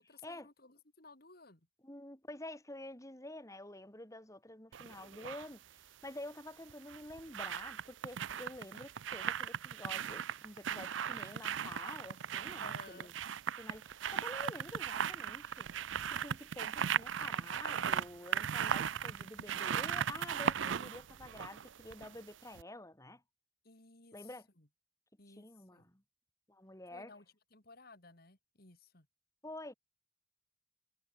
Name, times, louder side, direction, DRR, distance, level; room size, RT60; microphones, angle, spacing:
voice 1, 0.0-1.7 12.6-13.1 23.6-24.7 25.2-25.9 26.9-27.3 27.5-29.1, left 3 dB, 55° left, 3.6 m, -57 dB
voice 2, 1.8-13.1 13.6-15.7 16.1-23.2 24.1-24.5 25.3-26.0 26.5-27.1 29.4-29.7, left 1 dB, 15° left, 3.6 m, -49 dB
sound 1, 4.7-5.5 6.7-22.2 22.6-22.7, right 8 dB, 80° right, 0.5 m, -37 dB
head